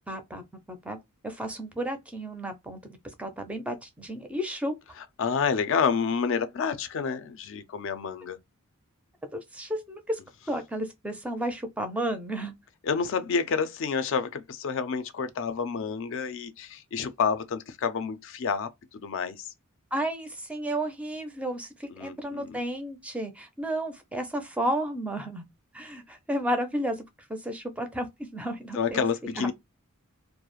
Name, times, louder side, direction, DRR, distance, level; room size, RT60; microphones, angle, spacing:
voice 1, 0.1-0.4 0.7-1.0 1.2-4.7 9.3-10.2 10.5-12.5 19.9-25.4 25.7-27.0 27.3-29.5, right 1 dB, 5° right, 0.4 m, -32 dB
voice 2, 5.2-8.4 12.8-19.5 21.9-22.6 28.7-29.5, left 6 dB, 60° left, 0.4 m, -29 dB
2.3 x 2.0 x 3.0 m
head